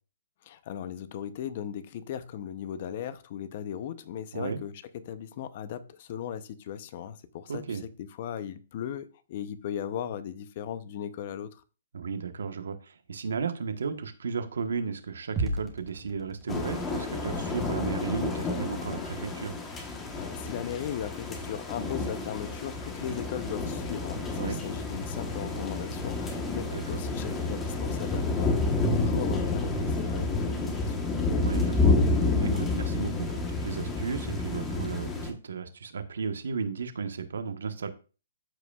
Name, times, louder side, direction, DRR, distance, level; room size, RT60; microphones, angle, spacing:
voice 1, 0.4-11.6 20.2-31.1, left 9 dB, 40° left, 0.6 m, -37 dB
voice 2, 7.5-7.8 11.9-19.5 24.4-24.6 26.7-27.0 31.4-37.9, right 5 dB, 80° right, 1.1 m, -34 dB
sound 1, 15.4-33.6, right 2 dB, 10° right, 1.3 m, -44 dB
sound 2, 16.5-35.3, left 3 dB, 15° left, 1.1 m, -29 dB
13.5 x 4.9 x 2.3 m
hypercardioid pair, 155°, 0 cm